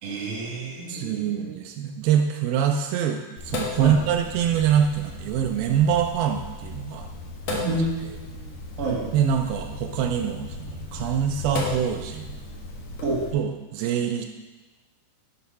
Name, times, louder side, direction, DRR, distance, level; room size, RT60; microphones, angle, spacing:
voice 1, 0.0-1.5 3.8-4.0 7.6-8.5 8.8-9.0 13.0-13.2, right 2 dB, 45° right, -2 dB, 2.6 m, -29 dB
voice 2, 0.9-7.1 7.5-7.8 9.1-12.4 13.3-14.2, right 8 dB, 90° right, 4 dB, 2.1 m, -24 dB
Sink (filling or washing), 3.4-13.3, left 3 dB, 60° left, 1.9 m, -36 dB
11.5 x 7.0 x 4.1 m, 1.2 s
omnidirectional pair, 5.0 m